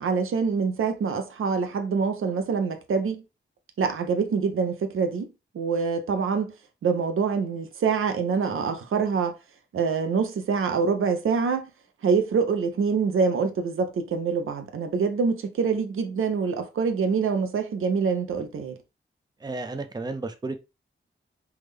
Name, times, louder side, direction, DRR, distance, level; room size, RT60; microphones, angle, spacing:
voice 1, 0.0-3.2 3.8-5.3 5.5-6.5 6.8-9.3 9.7-11.7 12.0-18.8, right 5 dB, 90° right, 0.5 m, -25 dB
voice 2, 19.4-20.5, right 3 dB, 20° right, 0.5 m, -32 dB
3.5 x 2.1 x 3.2 m
wide cardioid pair, 75°, 21 cm